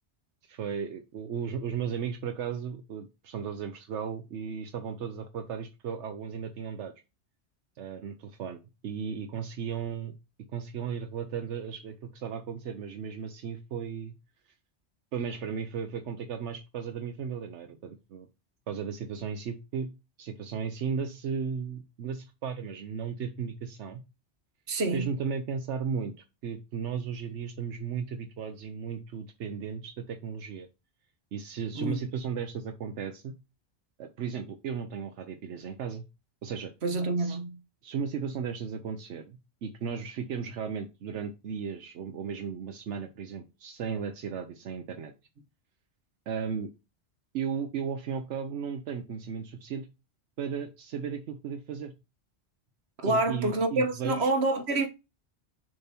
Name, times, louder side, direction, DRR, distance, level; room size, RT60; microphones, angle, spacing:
voice 1, 0.4-6.9 7.8-10.1 10.5-14.1 15.1-18.3 18.7-19.9 20.2-24.0 24.9-26.1 26.4-30.7 31.3-33.3 34.0-36.0 36.4-36.7 37.2-37.4 37.8-45.1 46.3-46.7 47.3-49.9 50.4-51.9 53.0-54.3, right 6 dB, 85° right, 1.0 m, -35 dB
voice 2, 24.7-25.1 31.7-32.0 36.8-37.6 53.0-54.9, right 2 dB, 70° right, 1.4 m, -27 dB
6.7 x 3.4 x 4.2 m
omnidirectional pair, 1.2 m